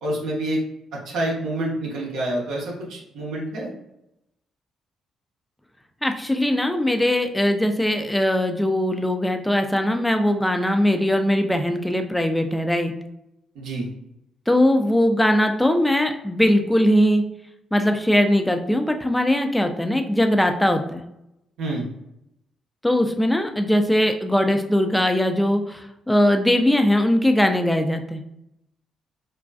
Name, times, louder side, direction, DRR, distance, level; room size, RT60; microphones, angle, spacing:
voice 1, 0.0-0.6 0.9-3.7 13.5-13.9 21.6-21.9, right 1 dB, 70° right, -3 dB, 0.6 m, -27 dB
voice 2, 6.0-12.9 14.5-17.2 17.7-21.0 22.8-28.2, left 1 dB, 10° left, 6 dB, 0.4 m, -20 dB
2.5 x 2.3 x 2.2 m, 0.82 s
hypercardioid pair, 45°, 0 cm